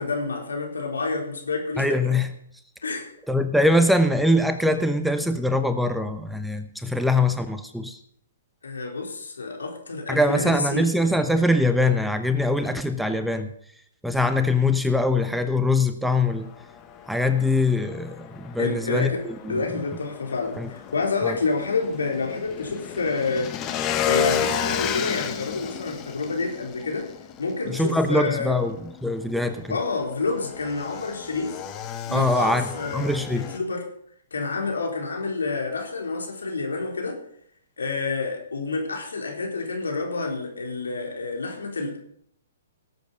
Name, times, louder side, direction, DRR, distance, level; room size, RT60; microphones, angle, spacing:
voice 1, 0.0-2.0 2.8-3.1 8.6-10.9 18.6-19.2 19.5-23.5 24.0-27.1 27.4-28.6 29.7-31.6 32.1-33.9 34.3-37.2 37.8-42.0, left 4 dB, 85° left, 1 dB, 4.1 m, -28 dB
voice 2, 1.8-2.3 3.3-8.0 10.1-13.5 14.0-16.5 17.1-19.6 20.6-20.7 21.2-21.3 27.7-29.8 32.1-33.5, left 1 dB, ahead, 8 dB, 1.0 m, -23 dB
Motorcycle / Engine, 16.1-33.6, left 8 dB, 30° left, 1.5 m, -33 dB
18.5 x 8.1 x 5.6 m, 0.68 s
hypercardioid pair, 130°, 0 cm